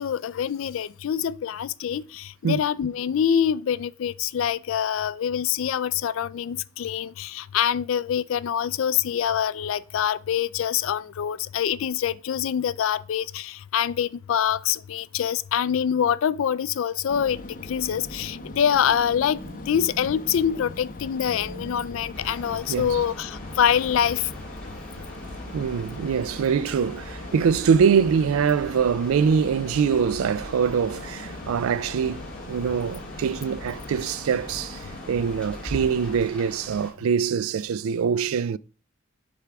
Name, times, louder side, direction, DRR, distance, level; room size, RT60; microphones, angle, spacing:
voice 1, 0.0-17.4 17.7-24.3, left 8 dB, 65° left, 0.3 m, -25 dB
sound 1, 17.1-36.3, left 2 dB, 40° left, 0.8 m, -40 dB
sound 2, 19.4-23.4, right 1 dB, 25° right, 0.7 m, -45 dB
sound 3, 22.1-36.9, equal, 5° left, 1.7 m, -43 dB
voice 2, 22.7-23.0 25.5-32.2 32.5-38.6, right 6 dB, 75° right, 0.3 m, -23 dB
8.1 x 3.5 x 5.8 m
head